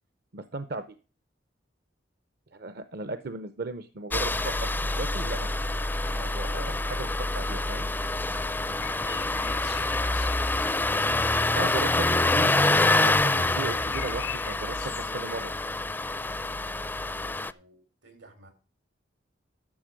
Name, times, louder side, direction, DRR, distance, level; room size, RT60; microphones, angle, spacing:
voice 1, 0.3-0.8 2.5-4.7 5.0-7.9 11.5-15.5, right 3 dB, 60° right, 11 dB, 0.7 m, -37 dB
Engine starting, 4.1-17.5, left 2 dB, 10° left, 0.4 m, -26 dB
sound 1, 8.8-10.7 13.6-15.1, left 12 dB, 65° left, 0.5 m, -42 dB
voice 2, 17.3-18.5, right 2 dB, 85° right, 7 dB, 3.9 m, -56 dB
12.0 x 6.8 x 5.1 m, 0.35 s
head